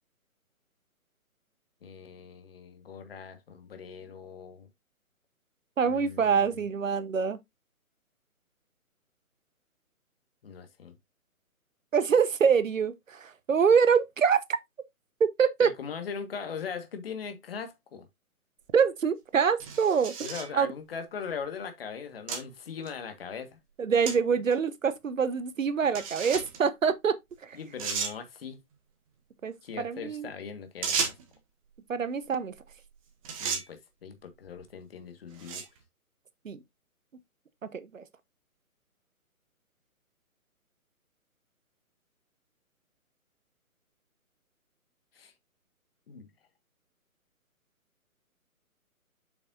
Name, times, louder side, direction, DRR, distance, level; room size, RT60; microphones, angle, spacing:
voice 1, 1.8-4.7 5.8-6.6 10.4-11.0 15.6-18.1 20.2-23.6 27.5-28.6 29.6-31.1 33.4-35.7 45.1-45.3 46.1-46.3, left 6 dB, 40° left, 1.6 m, -40 dB
voice 2, 5.8-7.4 11.9-14.4 15.2-15.7 18.7-20.3 20.5-20.7 23.8-27.2 27.4-27.6 29.4-30.3 31.9-32.5 36.4-36.6 37.7-38.0, right 6 dB, 60° right, 1.0 m, -25 dB
sound 1, 18.7-18.8 19.6-20.5 21.3-21.4 22.3-22.4 22.9-23.0 24.1-24.2 24.5-24.6 25.9-26.6 27.3-27.4 27.8-28.2 30.8-31.4 32.7-32.9 33.2-33.7 34.5-34.7 35.3-35.8, right 6 dB, 25° right, 1.5 m, -33 dB
7.6 x 5.8 x 2.5 m
figure-of-eight pair, 140°, 43 cm